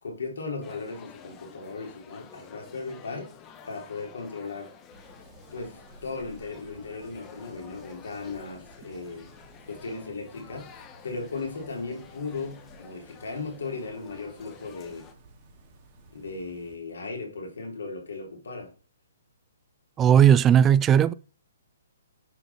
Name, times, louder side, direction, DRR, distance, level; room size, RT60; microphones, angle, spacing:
voice 1, 0.0-3.3 3.7-4.7 5.5-9.3 9.7-10.8 11.0-15.1 16.1-18.7, left 3 dB, 75° left, 3.5 m, -37 dB
sound 1, 0.6-15.1, left 7 dB, 25° left, 1.1 m, -50 dB
sound 2, 4.9-16.8, right 2 dB, 35° right, 2.6 m, -54 dB
voice 2, 20.0-21.1, right 9 dB, 20° right, 0.4 m, -17 dB
10.0 x 5.2 x 4.3 m
hypercardioid pair, 135°, 0 cm